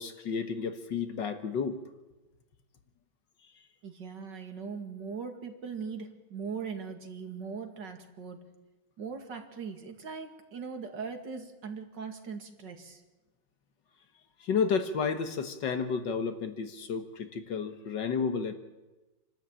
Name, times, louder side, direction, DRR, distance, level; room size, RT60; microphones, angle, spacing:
voice 1, 0.0-1.8 14.4-18.5, left 6 dB, 70° left, 9 dB, 1.9 m, -31 dB
voice 2, 3.8-8.4 9.0-13.0, right 5 dB, 65° right, 5 dB, 2.8 m, -40 dB
28.0 x 12.5 x 8.8 m, 1.1 s
omnidirectional pair, 2.1 m